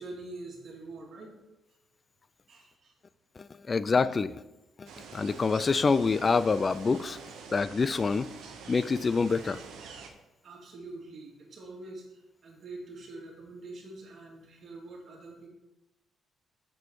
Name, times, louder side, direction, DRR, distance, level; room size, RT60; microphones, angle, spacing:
voice 1, 0.0-1.3 2.5-2.9 10.4-15.5, right 2 dB, 55° right, -1 dB, 2.4 m, -45 dB
voice 2, 3.4-4.3 4.8-7.2 7.5-8.3 8.7-9.6, left 4 dB, 35° left, 16 dB, 0.4 m, -26 dB
sound 1, 4.9-10.1, right 5 dB, 85° right, 1.0 m, -46 dB
7.0 x 6.6 x 4.7 m, 0.96 s
cardioid pair, 90°, 0 cm